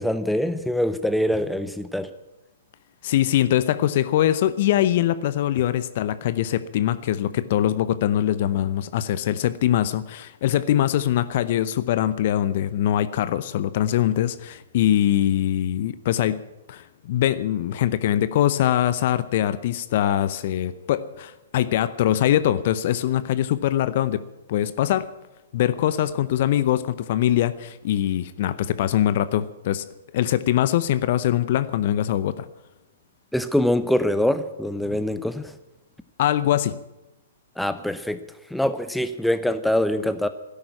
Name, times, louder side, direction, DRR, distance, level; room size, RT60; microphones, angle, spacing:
voice 1, 0.0-2.1 33.3-35.5 37.6-38.2 38.5-40.3, left 1 dB, ahead, 12 dB, 0.9 m, -24 dB
voice 2, 3.0-16.4 16.7-24.2 24.5-25.1 25.5-29.9 30.1-32.5 36.2-36.8, left 11 dB, 50° left, 15 dB, 0.7 m, -22 dB
13.0 x 10.5 x 9.7 m, 0.96 s
figure-of-eight pair, 115°, 0 cm